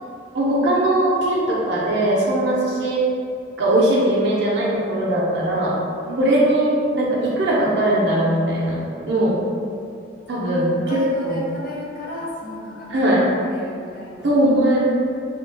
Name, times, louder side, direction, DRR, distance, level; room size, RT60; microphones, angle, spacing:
voice 1, 0.3-3.0 3.6-5.7 6.2-8.8 9.0-9.4 10.3-11.4 12.9-13.2 14.2-14.8, right 1 dB, 60° right, -5 dB, 0.5 m, -19 dB
voice 2, 6.0-6.4 8.7-8.8 10.3-14.3, left 1 dB, 45° left, -5 dB, 0.6 m, -35 dB
2.8 x 2.7 x 2.6 m, 2.4 s
head